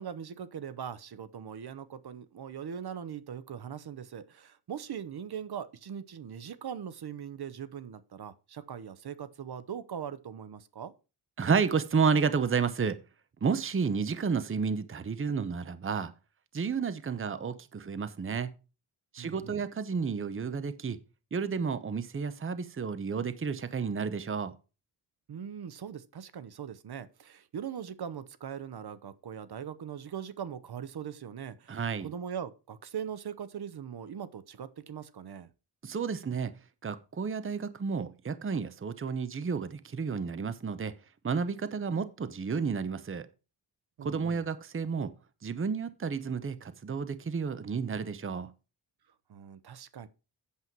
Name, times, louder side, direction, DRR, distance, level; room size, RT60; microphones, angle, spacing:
voice 1, 0.0-10.9 19.2-19.6 25.3-35.5 44.0-44.4 49.3-50.1, right 8 dB, 65° right, 0.9 m, -41 dB
voice 2, 11.4-13.0 13.4-16.1 16.5-18.5 19.1-21.0 21.3-24.5 31.7-32.1 35.8-36.5 36.8-40.9 41.2-43.3 44.0-45.1 45.4-48.5, right 5 dB, 30° right, 0.8 m, -31 dB
8.5 x 7.6 x 4.6 m
wide cardioid pair, 115°, 42 cm